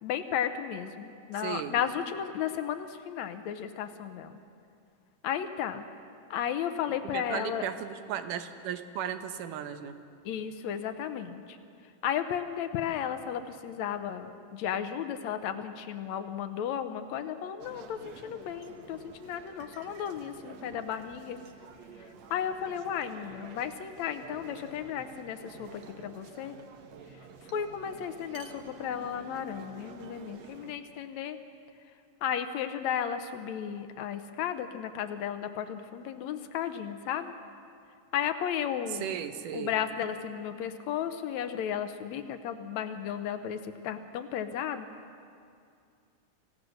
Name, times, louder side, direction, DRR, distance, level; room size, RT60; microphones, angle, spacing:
voice 1, 0.0-4.4 5.2-5.8 6.3-7.7 10.3-11.4 12.0-21.4 22.3-26.5 27.5-31.4 32.2-37.3 38.1-39.1 39.5-44.9, left 9 dB, 70° left, 9 dB, 1.9 m, -34 dB
voice 2, 1.3-1.8 6.9-9.9 38.9-39.7, right 9 dB, 80° right, 9 dB, 2.4 m, -36 dB
sound 1, 17.6-30.7, right 5 dB, 65° right, 2.1 m, -50 dB
25.5 x 16.5 x 6.5 m, 2.4 s
omnidirectional pair, 3.8 m